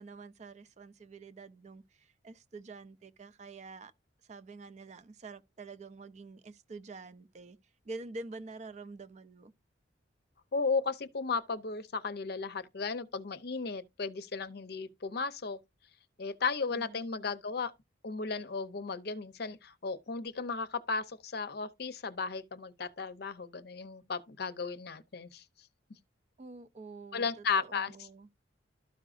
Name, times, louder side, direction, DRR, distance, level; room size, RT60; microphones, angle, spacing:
voice 1, 0.0-3.9 4.2-7.6 7.8-9.5 16.7-17.3 26.4-28.3, right 3 dB, 35° right, 0.4 m, -47 dB
voice 2, 10.5-15.6 16.2-17.7 18.0-25.4 27.1-27.9, left 4 dB, 55° left, 0.6 m, -35 dB
12.5 x 4.9 x 2.5 m
head